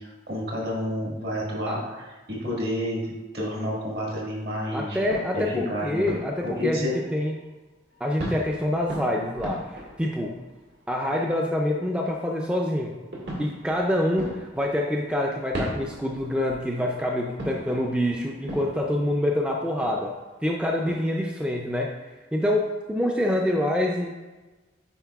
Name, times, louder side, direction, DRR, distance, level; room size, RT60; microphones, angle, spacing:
voice 1, 0.0-5.0 5.3-6.0 6.4-6.9, left 1 dB, 60° right, -4 dB, 1.8 m, -30 dB
voice 2, 4.7-7.4 8.0-10.4 10.9-13.0 13.4-20.1 20.4-21.9 22.3-24.1, left 1 dB, 5° right, 0 dB, 0.3 m, -26 dB
sound 1, 5.0-7.5 7.9-11.9 12.9-20.9, equal, 80° right, 1.7 m, -39 dB
9.0 x 4.6 x 2.3 m, 1.2 s
head